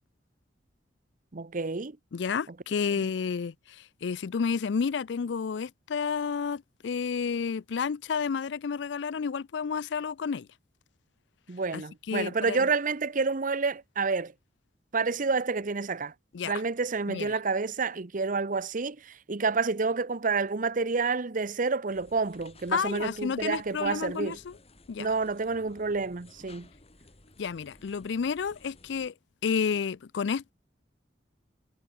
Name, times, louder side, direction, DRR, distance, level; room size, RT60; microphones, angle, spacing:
voice 1, 1.3-2.0 11.5-14.3 14.9-16.1 16.4-24.4 25.0-26.7, right 4 dB, 45° right, 0.8 m, -29 dB
voice 2, 2.1-10.5 11.7-11.8 12.1-12.7 16.3-16.5 17.1-17.4 22.7-24.6 24.9-25.1 27.4-29.1 29.4-30.5, left 6 dB, 75° left, 0.4 m, -31 dB
sound 1, 21.9-29.1, left 2 dB, 35° left, 5.0 m, -56 dB
head